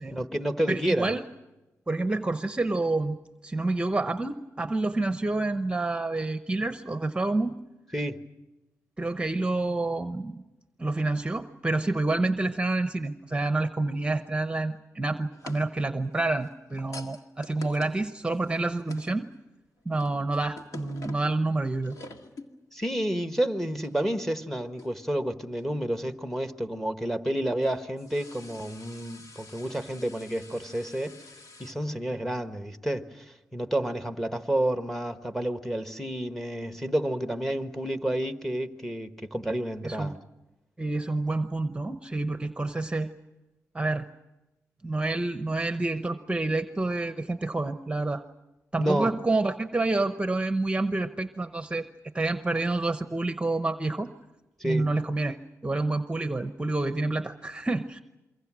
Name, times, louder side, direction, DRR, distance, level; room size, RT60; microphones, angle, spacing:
voice 1, 0.1-1.1 7.9-8.2 22.7-31.2 31.6-40.2 48.8-49.1 54.6-54.9, right 1 dB, 5° left, 1.4 m, -30 dB
voice 2, 0.7-1.2 1.9-3.2 3.4-7.6 9.0-10.4 10.8-19.3 19.8-21.9 39.8-40.1 40.8-43.1 43.7-44.0 44.8-48.2 48.7-51.9 52.1-54.1 54.6-55.4 55.6-58.0, right 2 dB, 15° right, 0.9 m, -28 dB
sound 1, 15.3-19.3 19.7-21.4 21.8-22.5 22.8-22.9 23.8-24.0 24.8-25.2 25.6-25.7 27.3-31.7, left 3 dB, 70° left, 1.9 m, -47 dB
28.0 x 23.5 x 6.2 m
cardioid pair, 80°, 6 cm